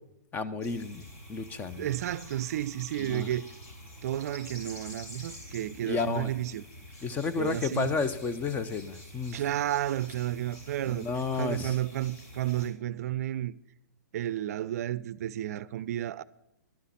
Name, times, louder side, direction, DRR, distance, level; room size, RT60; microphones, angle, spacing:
voice 1, 0.3-1.9 3.1-3.3 5.9-6.3 7.0-9.4 10.9-11.8, left 4 dB, 15° left, 0.6 m, -32 dB
sound 1, 0.6-12.7, left 1 dB, 50° left, 5.2 m, -48 dB
voice 2, 1.8-3.5 4.0-6.6 7.4-7.9 9.3-11.1 11.3-13.5 14.1-16.2, right 12 dB, 55° right, 0.4 m, -32 dB
11.5 x 5.7 x 8.4 m
hypercardioid pair, 135°, 10 cm